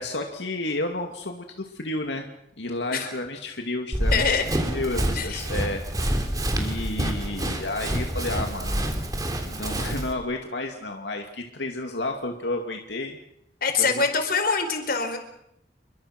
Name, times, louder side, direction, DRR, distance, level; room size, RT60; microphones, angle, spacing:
voice 1, 0.0-2.3 2.6-5.8 6.1-6.2 6.5-9.1 9.4-13.2 13.8-14.0, left 2 dB, 85° left, 3 dB, 2.5 m, -31 dB
Run, 3.9-10.1, equal, 20° right, 3.6 m, -27 dB
voice 2, 4.1-4.5 5.2-5.4 13.6-15.2, left 5 dB, 60° left, 7 dB, 4.4 m, -24 dB
28.5 x 23.5 x 6.1 m, 0.77 s
head